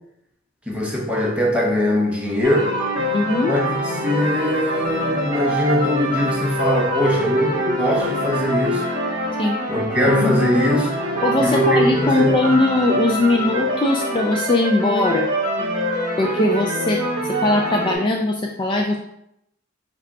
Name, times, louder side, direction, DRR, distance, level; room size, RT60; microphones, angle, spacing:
voice 1, 0.7-2.8 3.4-8.8 9.7-11.0 11.4-12.4, left 1 dB, 5° right, -2 dB, 0.8 m, -21 dB
sound 1, 2.4-17.9, equal, 25° right, 1.7 m, -24 dB
voice 2, 3.1-3.6 9.4-9.6 11.2-15.3 16.2-17.0 17.3-19.0, left 2 dB, 25° left, 1 dB, 0.3 m, -20 dB
4.9 x 2.3 x 4.0 m, 0.76 s
head